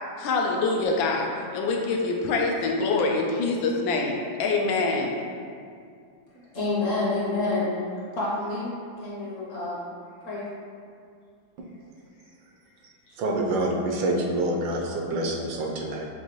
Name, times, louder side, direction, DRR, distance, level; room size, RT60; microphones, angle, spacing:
voice 1, 0.2-5.2, left 3 dB, 90° left, 0 dB, 1.4 m, -25 dB
voice 2, 6.3-7.7 8.1-9.8 10.2-10.4 13.1-13.2, left 2 dB, 55° left, -6 dB, 1.0 m, -28 dB
voice 3, 13.2-16.0, right 1 dB, 80° right, 0 dB, 1.3 m, -26 dB
6.7 x 2.6 x 2.9 m, 2.3 s
omnidirectional pair, 2.1 m